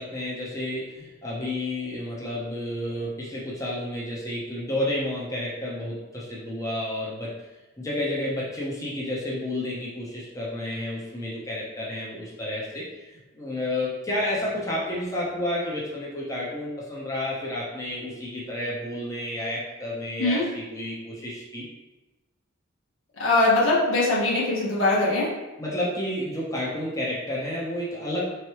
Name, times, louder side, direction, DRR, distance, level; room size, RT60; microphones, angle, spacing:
voice 1, 0.0-7.3 7.8-21.7 25.6-28.3, left 1 dB, 15° left, -6 dB, 0.8 m, -31 dB
voice 2, 23.2-25.3, left 2 dB, 70° left, -6 dB, 1.2 m, -21 dB
4.4 x 3.1 x 3.0 m, 1.1 s
head